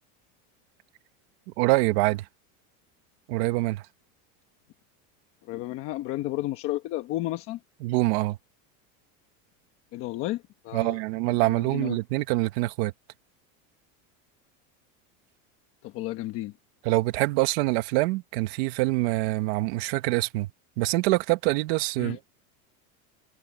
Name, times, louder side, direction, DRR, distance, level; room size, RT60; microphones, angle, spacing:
voice 1, 1.6-2.2 3.3-3.8 7.8-8.4 10.7-12.9 16.8-20.5 20.8-22.2, right 20 dB, 50° right, 1.3 m, -25 dB
voice 2, 5.5-7.6 9.9-11.0 11.3-12.0 15.8-16.5 22.0-22.2, left 16 dB, 35° left, 1.2 m, -32 dB
supercardioid pair, 180°, 42 cm